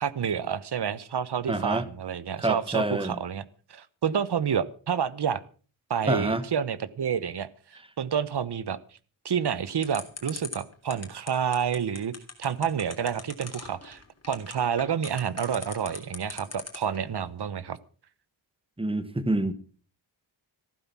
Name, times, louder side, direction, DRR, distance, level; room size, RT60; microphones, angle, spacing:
voice 1, 0.0-3.4 3.7-5.4 5.9-7.5 8.0-8.8 9.2-12.1 12.4-14.0 14.3-17.8, right 7 dB, 55° right, 1.0 m, -29 dB
voice 2, 1.5-1.9 2.4-3.2 6.0-6.4 18.8-19.5, right 2 dB, 10° right, 1.3 m, -27 dB
sound 1, 9.8-17.0, left 4 dB, 30° left, 3.4 m, -39 dB
15.0 x 12.5 x 6.0 m
wide cardioid pair, 145°, 47 cm